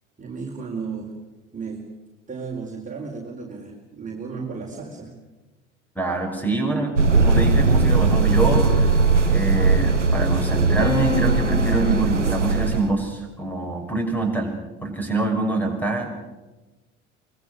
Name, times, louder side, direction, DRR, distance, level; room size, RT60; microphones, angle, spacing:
voice 1, 0.2-1.1 1.5-1.9 2.3-5.1, right 5 dB, 20° right, -1 dB, 4.4 m, -34 dB
voice 2, 5.9-6.9 7.2-9.0 9.3-14.5 14.8-16.1, right 2 dB, 5° left, 4 dB, 6.6 m, -25 dB
sound 1, 7.0-12.9, right 4 dB, 85° right, 1.0 m, -19 dB
sound 2, 8.4-10.1 10.8-12.7, left 6 dB, 80° left, 4.6 m, -33 dB
25.0 x 22.5 x 6.6 m, 1.1 s
figure-of-eight pair, 65°, 35 cm